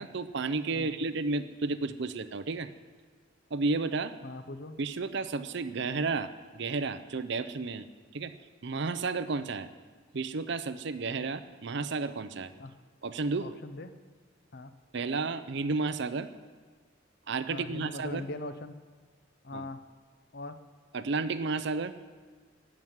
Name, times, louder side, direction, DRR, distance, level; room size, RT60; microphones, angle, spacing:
voice 1, 0.0-2.7 3.5-4.2 4.8-7.9 8.1-8.3 8.6-9.7 10.1-12.5 13.0-13.5 14.9-16.3 17.3-18.3 19.5-19.7 20.9-21.9, right 3 dB, 60° right, 12 dB, 0.6 m, -32 dB
voice 2, 4.2-4.8 12.6-12.7 13.4-13.9 14.5-14.7 17.5-18.7 19.4-19.8 20.3-20.6, left 2 dB, 50° left, 11 dB, 0.8 m, -40 dB
14.5 x 6.1 x 9.5 m, 1.5 s
head